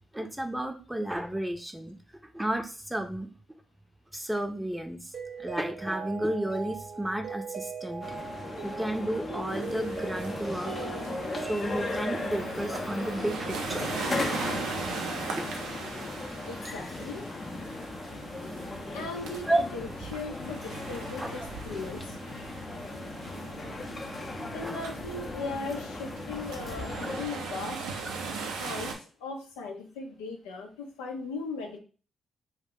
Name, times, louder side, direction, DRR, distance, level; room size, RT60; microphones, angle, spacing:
voice 1, 0.1-2.0 2.3-3.3 4.1-5.1 5.4-8.1 8.6-10.7 11.3-13.9 15.3-15.7 19.5-19.6 21.2-21.3 22.7-22.8 24.4-24.8, right 1 dB, 10° right, 6 dB, 0.6 m, -32 dB
Mallet percussion, 5.1-13.3, right 5 dB, 65° right, 0.8 m, -40 dB
sound 1, 8.0-27.3, left 3 dB, 40° left, 0.6 m, -37 dB
sound 2, 9.5-28.9, right 4 dB, 80° right, 0.5 m, -39 dB
voice 2, 16.5-17.3 18.9-22.2 24.5-27.8 28.6-31.8, left 3 dB, 85° left, 2 dB, 0.5 m, -38 dB
2.4 x 2.0 x 3.6 m, 0.36 s
hypercardioid pair, 45°, 0 cm